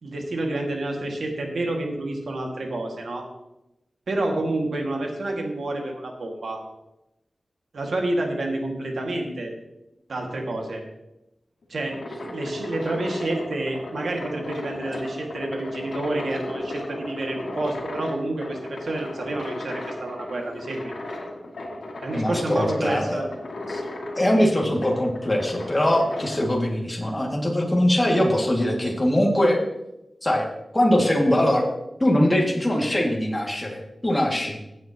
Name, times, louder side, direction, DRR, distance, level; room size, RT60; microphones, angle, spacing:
voice 1, 0.0-3.3 4.1-6.6 7.7-9.5 10.1-10.8 11.7-20.9 22.0-23.3, right 2 dB, 90° right, 1 dB, 2.0 m, -29 dB
sound 1, 11.6-26.4, left 1 dB, 85° left, 2.1 m, -35 dB
voice 2, 22.1-23.2 23.7-23.8 24.2-29.6 30.2-30.5 30.7-31.7 32.0-34.6, left 1 dB, 20° left, -1 dB, 2.2 m, -22 dB
15.5 x 8.8 x 3.0 m, 0.91 s
wide cardioid pair, 110°, 0 cm